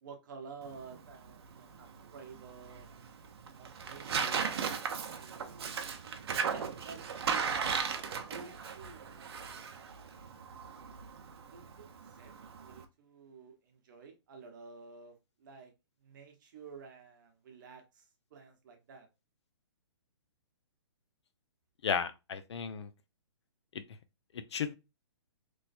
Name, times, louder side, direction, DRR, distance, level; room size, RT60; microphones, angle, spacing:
voice 1, 0.0-2.9 3.6-5.9 6.5-7.6 8.3-9.2 11.4-15.7 16.0-19.1, right 5 dB, 45° right, 1.0 m, -51 dB
Tearing, 0.6-12.8, right 6 dB, 60° right, 0.7 m, -37 dB
voice 2, 21.8-22.9 23.7-23.8 24.5-24.8, left 7 dB, 65° left, 0.6 m, -34 dB
3.1 x 2.1 x 4.2 m
hypercardioid pair, 160°, 15 cm